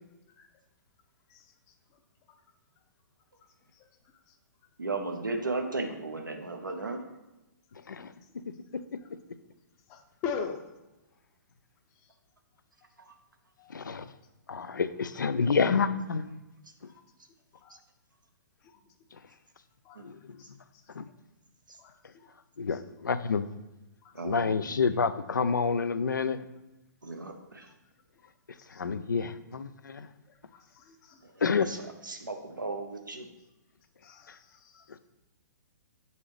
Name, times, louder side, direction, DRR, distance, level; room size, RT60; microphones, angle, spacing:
voice 1, 4.8-7.0 13.0-13.1 17.7-17.8 19.9-20.1 21.7-21.8 24.1-24.8 27.0-27.7 31.2-33.3, right 3 dB, 85° right, 4 dB, 0.8 m, -36 dB
voice 2, 8.5-9.0 13.7-14.1 14.5-16.3 20.0-20.4 20.9-21.1 22.6-23.5 24.2-26.5 28.7-30.1 31.4-31.7, left 5 dB, 80° left, 12 dB, 0.4 m, -29 dB
voice 3, 9.9-10.6 13.6-13.8 16.9-17.0 17.5-17.8 18.6-18.7 19.8-20.0 20.4-20.5 21.8-22.3 24.0-24.3 27.2-27.3 28.7-28.8 30.5-31.2 34.0-34.9, left 6 dB, 30° left, 5 dB, 0.6 m, -41 dB
7.4 x 4.0 x 3.2 m, 1.0 s
figure-of-eight pair, 120°, 10 cm